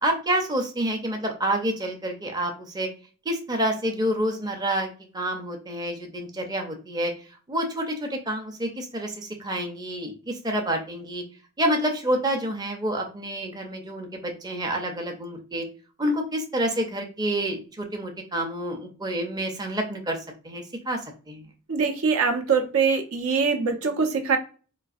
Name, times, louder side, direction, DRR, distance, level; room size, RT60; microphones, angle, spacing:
voice 1, 0.0-2.9 3.3-7.1 7.5-11.2 11.6-15.7 16.0-20.2 20.4-21.0 21.3-21.4, right 1 dB, 20° right, 2 dB, 0.5 m, -28 dB
voice 2, 21.7-24.4, right 5 dB, 70° right, 4 dB, 0.6 m, -23 dB
3.8 x 2.4 x 2.4 m, 0.37 s
head